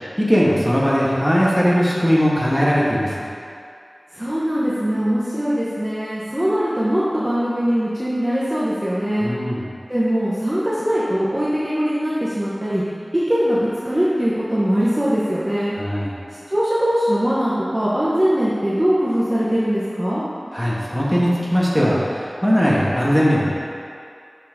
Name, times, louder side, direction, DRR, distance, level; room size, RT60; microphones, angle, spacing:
voice 1, 0.2-3.3 9.2-9.7 15.8-16.1 20.5-23.5, equal, ahead, -6 dB, 1.4 m, -19 dB
voice 2, 4.1-9.3 9.9-12.8 13.1-15.7 16.5-20.2, equal, 15° right, -9 dB, 1.0 m, -21 dB
6.2 x 5.7 x 3.7 m, 2.4 s
wide cardioid pair, 60°, 0 cm